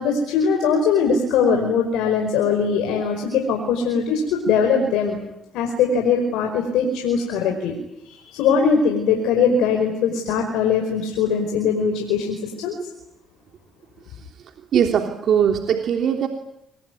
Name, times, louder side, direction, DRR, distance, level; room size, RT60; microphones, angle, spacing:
voice 1, 0.0-5.2 5.5-7.7 8.0-12.7, left 5 dB, 90° left, 3 dB, 5.2 m, -21 dB
voice 2, 14.7-16.3, right 8 dB, 70° right, 3 dB, 3.2 m, -20 dB
25.5 x 21.5 x 9.6 m, 0.85 s
supercardioid pair, 70°, 0 cm